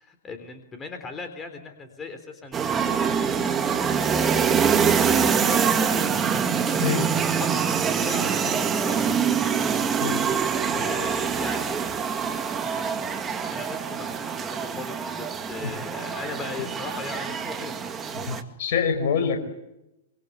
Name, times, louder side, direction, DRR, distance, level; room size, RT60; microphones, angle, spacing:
voice 1, 0.0-3.1 4.1-4.6 5.1-5.8 6.5-9.1 10.7-11.9 13.5-17.9, left 4 dB, 20° left, 7 dB, 3.7 m, -38 dB
sound 1, 2.5-18.4, right 6 dB, 20° right, 2.4 m, -25 dB
voice 2, 18.3-19.4, left 6 dB, 50° left, 7 dB, 5.5 m, -25 dB
26.0 x 25.0 x 8.2 m, 0.90 s
figure-of-eight pair, 105°, 0 cm